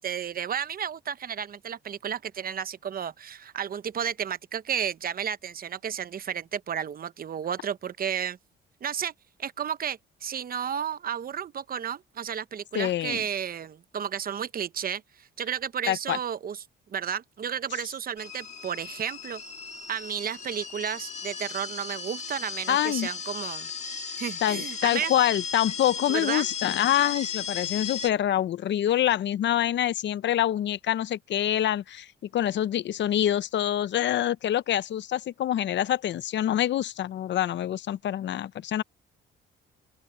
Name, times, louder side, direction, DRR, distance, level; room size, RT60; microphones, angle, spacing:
voice 1, 0.0-8.4 8.8-9.1 9.4-16.6 16.9-19.4 19.9-23.7 24.2-25.1 26.1-26.5, right 8 dB, 45° right, 0.9 m, -32 dB
voice 2, 12.7-13.2 15.9-16.2 22.7-23.1 24.4-32.1 32.3-38.8, left 11 dB, 60° left, 0.7 m, -26 dB
sound 1, 18.2-28.1, left 6 dB, 35° left, 1.8 m, -36 dB
open air
cardioid pair, 100°, 21 cm